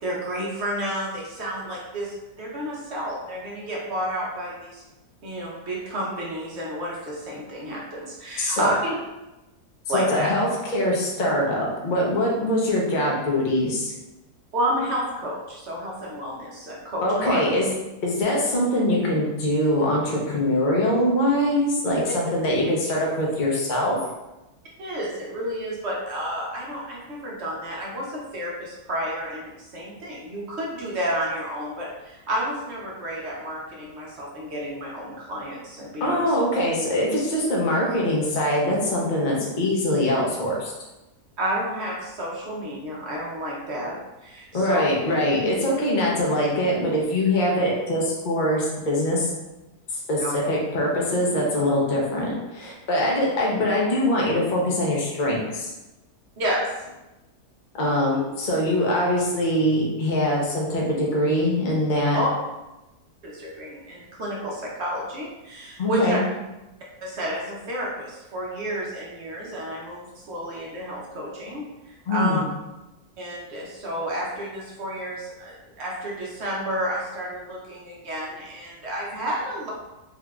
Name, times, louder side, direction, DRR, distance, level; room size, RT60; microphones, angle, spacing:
voice 1, 0.0-4.8 5.2-8.8 9.9-10.3 14.5-17.4 24.8-36.3 41.4-44.0 44.2-44.9 50.2-50.5 56.4-56.7 62.1-62.3 63.2-66.2 67.0-72.4 73.2-79.7, equal, 55° right, -4 dB, 0.8 m, -30 dB
voice 2, 8.4-8.7 9.9-13.9 17.0-17.7 18.0-24.0 36.0-40.7 44.5-49.3 50.1-55.7 57.7-62.2 65.8-66.2 72.1-72.4, left 1 dB, 50° left, -3 dB, 0.5 m, -23 dB
3.6 x 2.8 x 2.3 m, 1.0 s
omnidirectional pair, 1.8 m